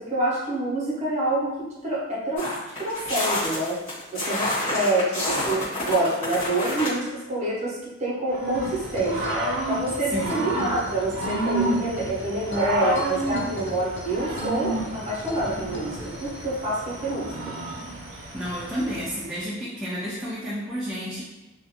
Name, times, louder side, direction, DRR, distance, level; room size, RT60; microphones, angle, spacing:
voice 1, 0.0-2.5 2.8-3.8 4.1-9.4 9.7-17.5, right 1 dB, 35° right, -6 dB, 0.7 m, -27 dB
sound 1, 2.4-6.9, left 1 dB, 30° left, 1.2 m, -28 dB
Growling / Cricket, 8.3-19.3, right 2 dB, 75° right, 0.5 m, -30 dB
sound 2, 8.5-16.4, left 1 dB, 60° left, 0.4 m, -40 dB
voice 2, 10.1-10.7 18.3-21.2, equal, 5° right, -9 dB, 0.3 m, -31 dB
2.4 x 2.1 x 2.8 m, 1.0 s
head